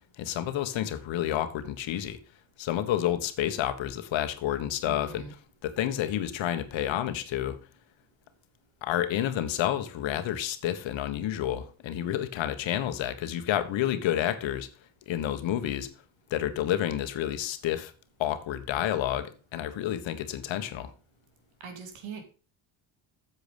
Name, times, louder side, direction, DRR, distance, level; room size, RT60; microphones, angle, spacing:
voice 1, 0.2-2.2 2.6-5.2 5.6-7.6 8.8-14.7 15.1-15.9 16.3-17.9 18.2-20.9, left 11 dB, 75° left, 1.4 m, -29 dB
voice 2, 4.9-5.3 21.6-22.2, right 6 dB, 80° right, 2.8 m, -41 dB
8.2 x 7.4 x 5.2 m
cardioid pair, 95°, 46 cm